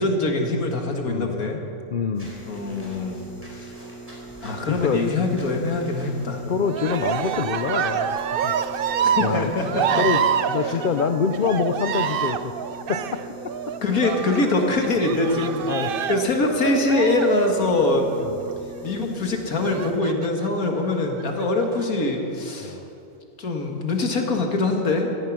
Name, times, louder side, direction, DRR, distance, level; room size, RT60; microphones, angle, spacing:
voice 1, 0.0-1.6 2.5-3.2 3.5-3.7 4.4-6.4 9.0-10.0 10.6-10.8 13.8-18.3 18.8-22.8 23.4-25.1, left 2 dB, 80° left, 2 dB, 2.3 m, -23 dB
voice 2, 1.9-2.3 4.7-5.0 6.5-8.5 9.2-9.5 10.0-10.2 10.5-12.5 12.9-13.2 15.7-15.9 18.2-18.4 22.6-22.9, left 6 dB, 55° left, 8 dB, 0.6 m, -25 dB
sound 1, 2.1-19.9, right 2 dB, 85° right, 5.1 m, -41 dB
Walk footsteps / Squeak, 2.2-10.1, equal, 10° right, 3.9 m, -48 dB
Cheering, 6.7-18.4 19.6-20.5 21.2-21.8, right 8 dB, 60° right, 0.6 m, -27 dB
17.0 x 13.5 x 6.1 m, 2.7 s
omnidirectional pair, 1.5 m